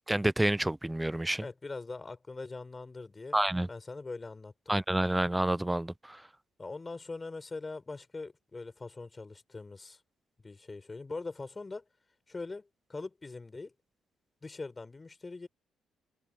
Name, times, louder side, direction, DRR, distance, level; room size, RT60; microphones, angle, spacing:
voice 1, 0.1-1.4 3.3-3.7 4.7-6.2, right 1 dB, 10° right, 0.4 m, -28 dB
voice 2, 1.4-3.4 3.7-4.7 6.6-10.0 10.4-11.9 12.3-13.7 14.4-15.5, left 3 dB, 25° left, 5.4 m, -42 dB
open air
cardioid pair, 90°, 0 cm